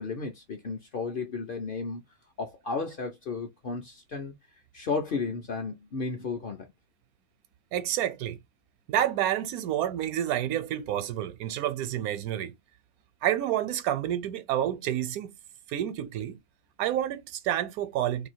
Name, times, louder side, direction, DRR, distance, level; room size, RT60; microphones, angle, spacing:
voice 1, 0.0-2.0 2.4-4.3 4.7-6.7, left 4 dB, 55° left, 0.6 m, -33 dB
voice 2, 7.7-8.4 8.9-12.5 13.2-15.3 15.7-16.4 16.8-18.3, right 11 dB, 85° right, 1.1 m, -29 dB
2.8 x 2.6 x 4.3 m
omnidirectional pair, 1.5 m